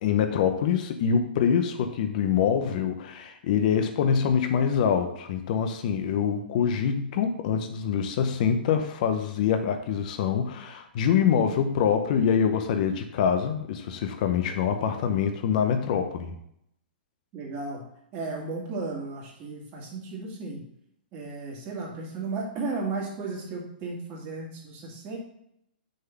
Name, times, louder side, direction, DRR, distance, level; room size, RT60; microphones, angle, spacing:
voice 1, 0.0-16.4, left 7 dB, 50° left, 7 dB, 0.8 m, -25 dB
voice 2, 17.3-20.6 21.1-25.2, right 3 dB, 35° right, -1 dB, 2.3 m, -34 dB
6.5 x 3.7 x 5.9 m, 0.75 s
hypercardioid pair, 125°, 5 cm